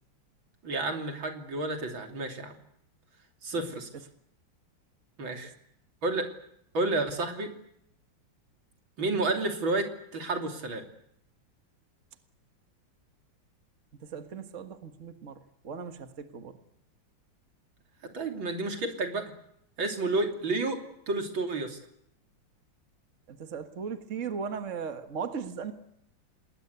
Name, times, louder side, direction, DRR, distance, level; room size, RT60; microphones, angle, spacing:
voice 1, 0.6-2.6 3.4-3.9 5.2-5.5 6.0-6.3 6.7-7.5 9.0-9.9 10.1-10.9 18.1-19.3 19.8-20.8 21.1-21.8, right 2 dB, 80° right, 4 dB, 3.8 m, -30 dB
voice 2, 14.0-16.6 23.3-25.7, right 6 dB, 40° right, 7 dB, 1.8 m, -38 dB
28.0 x 20.5 x 8.1 m, 0.75 s
omnidirectional pair, 2.1 m